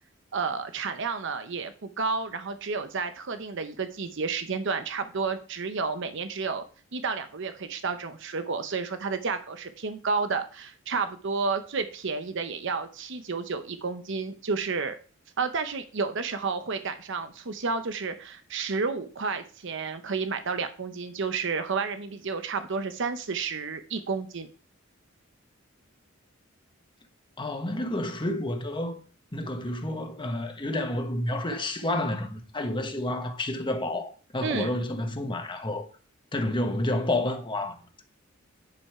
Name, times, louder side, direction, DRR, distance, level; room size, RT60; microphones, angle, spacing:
voice 1, 0.3-6.6 6.9-15.0 15.4-24.5 34.4-34.7, right 4 dB, 65° right, 0.8 m, -31 dB
voice 2, 27.4-29.0 29.3-35.9 36.3-38.0, left 1 dB, 25° left, 1.3 m, -30 dB
10.5 x 5.5 x 4.8 m
head